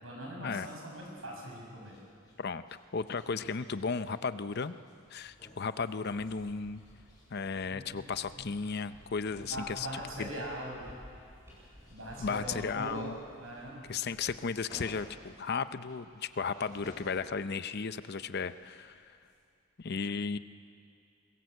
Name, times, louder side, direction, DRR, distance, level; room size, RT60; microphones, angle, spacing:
voice 1, 0.0-2.0 7.6-8.4 9.4-10.9 11.9-13.8, right 1 dB, 70° right, -1 dB, 6.9 m, -42 dB
sound 1, 0.6-19.4, left 1 dB, 20° left, 6.6 m, -59 dB
voice 2, 2.9-4.7 5.1-6.8 7.3-9.9 10.2-10.3 12.2-13.2 13.9-18.9 19.8-20.4, left 5 dB, 50° left, 12 dB, 0.6 m, -35 dB
sound 2, 5.8-14.4, equal, 10° right, 6.8 m, -56 dB
22.5 x 19.5 x 8.1 m, 2.4 s
head